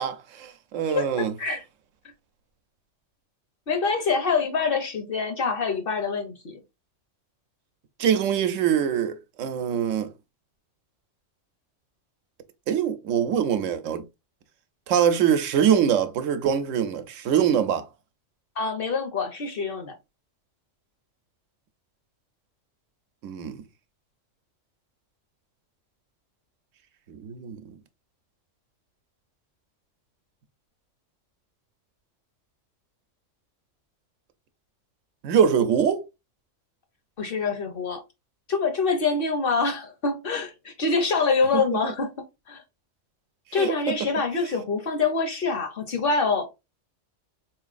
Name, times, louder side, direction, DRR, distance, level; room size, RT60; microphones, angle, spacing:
voice 1, 0.0-1.3 8.0-10.1 12.7-14.0 14.9-17.9 23.2-23.6 27.1-27.6 35.2-36.1 43.6-44.0, right 8 dB, 80° right, 1.0 m, -23 dB
voice 2, 0.9-1.6 3.7-6.6 18.6-19.9 37.2-38.0 38.5-42.1 42.5-42.6 43.5-46.4, left 4 dB, 55° left, 0.7 m, -25 dB
3.8 x 3.0 x 2.4 m
omnidirectional pair, 1.3 m